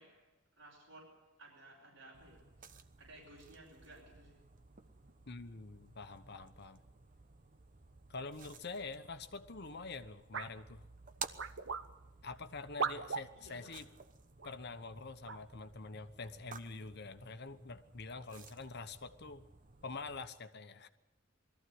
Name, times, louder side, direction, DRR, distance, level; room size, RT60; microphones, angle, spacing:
voice 1, 0.0-4.4 13.3-13.9, right 1 dB, 85° right, -4 dB, 5.7 m, -58 dB
sound 1, 2.1-20.3, right 5 dB, 45° right, 1.0 m, -54 dB
voice 2, 5.3-6.8 8.1-10.8 12.2-13.8 14.4-19.5 19.8-20.9, left 3 dB, 55° left, 9 dB, 1.1 m, -46 dB
sound 2, 10.3-10.5 11.4-11.8 12.8-13.3 14.4-14.5 15.3-15.5, right 5 dB, 65° right, 1.1 m, -37 dB
21.5 x 14.5 x 9.6 m, 1.0 s
head